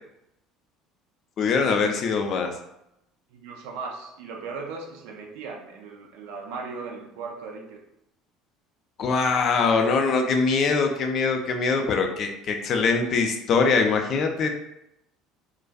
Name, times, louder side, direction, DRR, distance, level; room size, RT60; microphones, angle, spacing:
voice 1, 1.4-2.5 9.0-14.5, left 4 dB, 45° left, 4 dB, 0.4 m, -23 dB
voice 2, 3.3-7.8, right 4 dB, 65° right, 1 dB, 0.4 m, -37 dB
2.4 x 2.3 x 2.2 m, 0.83 s
figure-of-eight pair, 60°, 0 cm